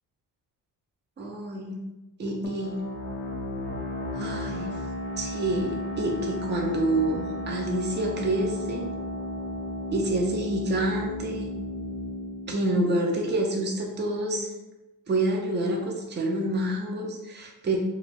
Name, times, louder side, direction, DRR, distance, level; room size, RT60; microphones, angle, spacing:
voice 1, 1.2-1.8 2.2-2.8 4.1-4.8 5.2-8.9 9.9-11.5 12.5-14.5 15.1-17.8, right 1 dB, 25° right, 0 dB, 0.5 m, -27 dB
sound 1, 2.4-13.8, left 1 dB, 25° left, 0.5 m, -34 dB
2.4 x 2.3 x 3.4 m, 1.0 s
cardioid pair, 110°, 41 cm